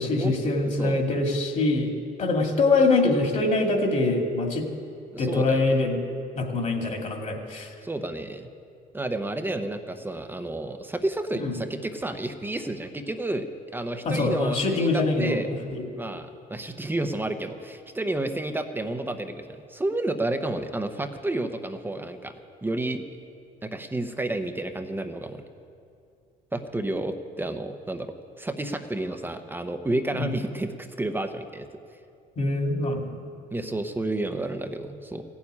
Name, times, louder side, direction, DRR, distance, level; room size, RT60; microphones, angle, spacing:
voice 1, 0.0-1.9 2.2-4.7 5.2-6.0 6.4-7.7 11.4-11.5 14.1-15.9 30.1-30.3 32.4-33.2, left 2 dB, 45° left, 2 dB, 2.3 m, -24 dB
voice 2, 5.1-5.6 7.8-8.5 8.9-13.5 13.7-15.5 16.0-19.4 19.7-22.3 22.6-23.0 23.6-25.4 26.5-31.6 33.5-35.2, right 2 dB, 10° right, 7 dB, 0.8 m, -30 dB
15.5 x 7.2 x 9.6 m, 2.5 s
cardioid pair, 110°, 17 cm